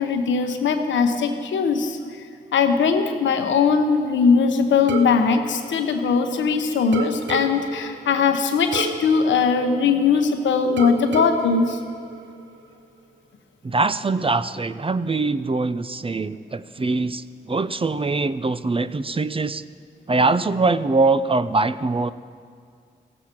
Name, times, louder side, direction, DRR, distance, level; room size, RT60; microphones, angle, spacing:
voice 1, 0.0-2.0 2.5-11.8, left 5 dB, 85° left, 6 dB, 0.9 m, -20 dB
sound 1, 4.9-6.5 6.9-10.3 10.8-12.7, right 3 dB, 80° right, 0.8 m, -32 dB
voice 2, 13.6-19.6 20.1-22.1, right 3 dB, 30° right, 14 dB, 0.5 m, -22 dB
16.5 x 7.8 x 5.9 m, 2.2 s
supercardioid pair, 45°, 19 cm